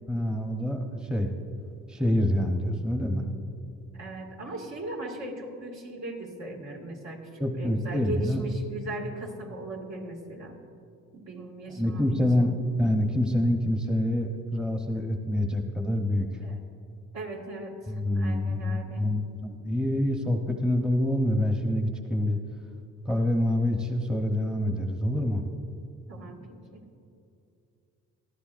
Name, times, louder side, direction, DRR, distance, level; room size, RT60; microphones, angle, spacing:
voice 1, 0.1-1.3 1.9-3.3 7.4-8.5 11.8-12.5 12.8-16.3 17.9-22.4 23.0-25.4, left 1 dB, 5° right, 3 dB, 0.9 m, -26 dB
voice 2, 3.9-10.6 11.1-12.6 16.4-16.6 17.1-19.1 26.1-26.8, right 2 dB, 65° right, 0 dB, 2.2 m, -39 dB
19.5 x 13.5 x 2.6 m, 2.6 s
cardioid pair, 90°, 30 cm